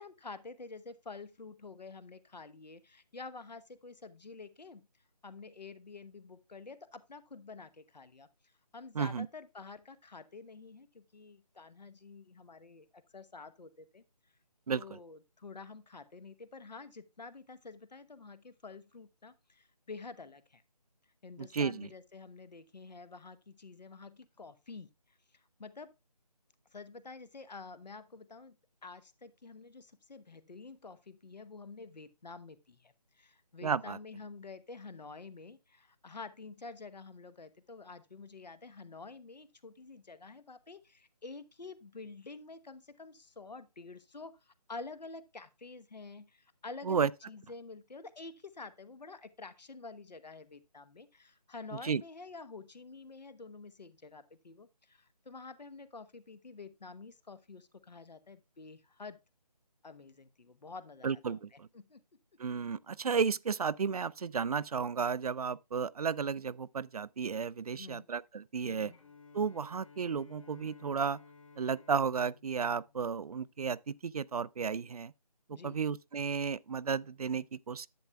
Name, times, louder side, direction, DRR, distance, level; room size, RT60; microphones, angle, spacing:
voice 1, 0.0-4.9 5.2-8.3 8.7-14.0 14.7-20.6 21.2-25.9 26.7-28.6 28.8-59.2 59.8-62.0 67.7-68.1 68.6-69.0 75.5-75.8, left 4 dB, 85° left, 1.0 m, -49 dB
voice 2, 9.0-9.3 14.7-14.8 21.4-21.9 33.6-34.0 46.9-47.1 51.8-52.0 61.0-61.7 62.4-68.9 69.3-71.2 71.6-75.1 75.5-77.9, right 6 dB, 65° right, 0.4 m, -33 dB
Bowed string instrument, 68.9-73.8, left 5 dB, 55° left, 2.3 m, -57 dB
10.5 x 8.5 x 2.3 m
figure-of-eight pair, 165°, 21 cm